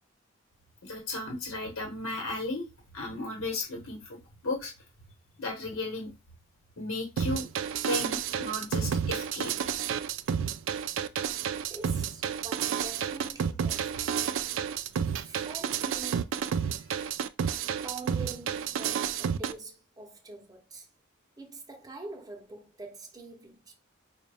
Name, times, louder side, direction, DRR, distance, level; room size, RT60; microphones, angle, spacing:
voice 1, 0.8-2.7 2.9-4.2 4.4-4.7 5.4-6.1 6.8-7.5 7.8-9.5, left 2 dB, 70° left, 1.0 m, -34 dB
sound 1, 7.2-19.5, right 8 dB, 60° right, 0.3 m, -30 dB
voice 2, 11.7-14.1 15.0-16.3 17.8-20.9 21.4-23.7, right 3 dB, 15° right, 0.7 m, -45 dB
5.0 x 2.2 x 3.4 m
head